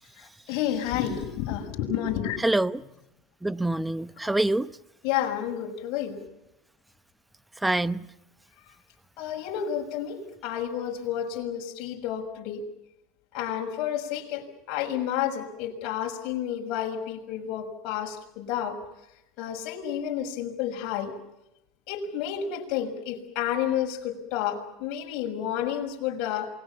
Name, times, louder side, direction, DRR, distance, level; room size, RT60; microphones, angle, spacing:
voice 1, 0.2-2.4 5.0-6.2 9.2-12.6 13.3-18.8 19.4-21.1 21.9-26.5, left 10 dB, 60° left, 6.3 m, -30 dB
voice 2, 2.4-2.8 3.4-4.7 7.6-8.1, right 2 dB, 5° right, 0.9 m, -25 dB
28.0 x 21.5 x 7.1 m
supercardioid pair, 105°, 0 cm